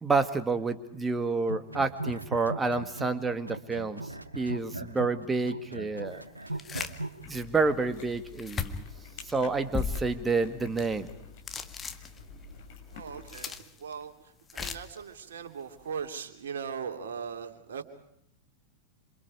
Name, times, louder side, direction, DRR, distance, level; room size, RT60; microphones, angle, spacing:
voice 1, 0.0-4.0 4.3-6.2 7.3-8.8 9.2-11.1, right 4 dB, 15° right, 10 dB, 2.0 m, -29 dB
sound 1, 1.4-3.2 3.5-7.2, right 2 dB, 85° right, 1.6 m, -38 dB
sound 2, 6.5-7.0 7.4-7.5 8.4-8.9 9.7-10.3 10.8-11.1 11.5-12.5 13.1-13.9 14.5-15.0, left 6 dB, 20° left, 1.7 m, -36 dB
sound 3, 7.2-13.5, left 5 dB, 50° left, 6.5 m, -49 dB
voice 2, 12.9-14.1 14.5-17.8, right 6 dB, 60° right, 5 dB, 3.0 m, -39 dB
27.5 x 27.5 x 5.0 m, 0.74 s
figure-of-eight pair, 90°, 0 cm